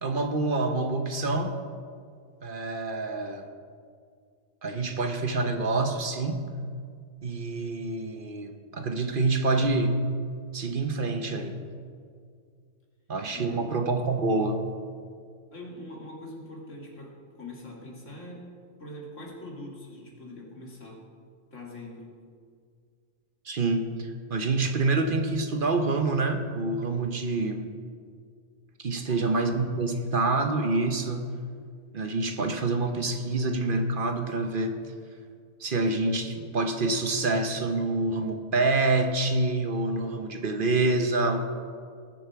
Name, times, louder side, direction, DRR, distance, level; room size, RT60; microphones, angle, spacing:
voice 1, 0.0-1.5 2.4-3.4 4.6-6.4 7.2-10.0 10.5-11.6 13.1-14.6 23.4-27.7 28.8-31.2 31.9-34.8 35.6-41.4, right 3 dB, 45° right, 6 dB, 0.9 m, -27 dB
voice 2, 13.3-13.6 15.5-18.5 18.8-21.0 21.5-22.2 28.9-29.3, left 1 dB, 60° left, -2 dB, 2.6 m, -43 dB
19.5 x 7.2 x 4.6 m, 2.1 s
omnidirectional pair, 1.4 m